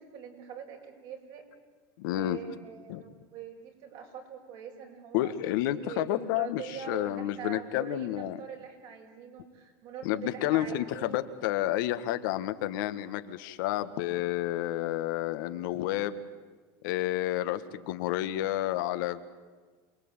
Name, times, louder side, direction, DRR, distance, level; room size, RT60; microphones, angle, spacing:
voice 1, 0.0-1.4 2.1-11.2, right 8 dB, 55° right, 2 dB, 6.0 m, -43 dB
voice 2, 2.0-2.4 2.9-3.0 5.1-8.4 10.0-16.2 16.8-19.2, left 14 dB, 75° left, 9 dB, 1.6 m, -30 dB
28.0 x 20.0 x 9.0 m, 1.4 s
supercardioid pair, 140°, 11 cm